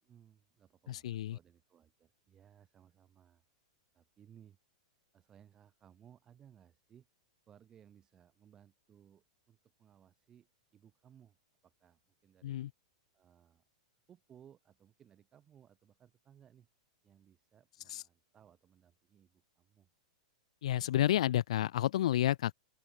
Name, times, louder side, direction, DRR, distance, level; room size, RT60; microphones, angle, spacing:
voice 1, 0.0-3.4 3.9-4.6 5.1-7.1 7.5-11.4 11.6-12.6 13.1-13.6 14.1-16.7 17.0-19.9, right 9 dB, 15° right, 6.3 m, -62 dB
voice 2, 0.9-1.4 12.4-12.7 17.9-18.0 20.6-22.5, left 12 dB, 70° left, 1.4 m, -30 dB
open air
supercardioid pair, 165°, 4 cm